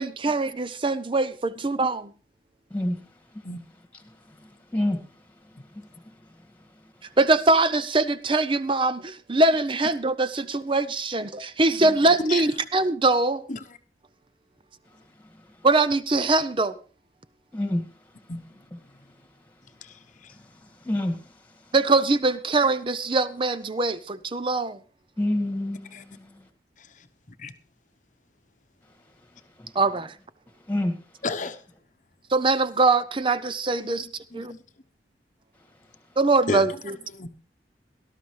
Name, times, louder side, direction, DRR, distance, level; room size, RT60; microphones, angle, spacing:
voice 1, 0.0-2.1 7.2-13.4 15.6-16.8 21.7-24.8 29.7-30.1 32.3-34.1 34.3-34.5 36.2-36.7, right 3 dB, 30° right, 0.6 m, -22 dB
voice 2, 17.5-17.9 20.8-21.2 25.2-26.4 29.6-29.7 30.7-31.0, left 1 dB, 10° left, 1.9 m, -27 dB
voice 3, 19.8-20.3 25.9-26.0 27.4-27.5 31.2-31.6 33.8-34.6 36.5-36.7 37.1-37.3, left 3 dB, 45° left, 0.9 m, -33 dB
18.5 x 12.5 x 3.3 m
head